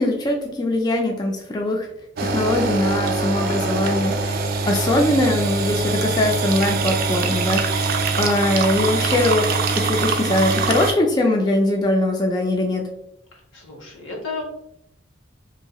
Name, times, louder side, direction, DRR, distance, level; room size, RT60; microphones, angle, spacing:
voice 1, 0.0-1.9 2.2-4.4 4.7-7.9 8.2-12.9, left 1 dB, 20° left, 1 dB, 0.3 m, -21 dB
sound 1, 2.2-10.9, right 3 dB, 50° right, 0.4 m, -23 dB
voice 2, 13.3-14.4, left 3 dB, 80° left, 0 dB, 0.9 m, -33 dB
2.9 x 2.7 x 2.3 m, 0.79 s
head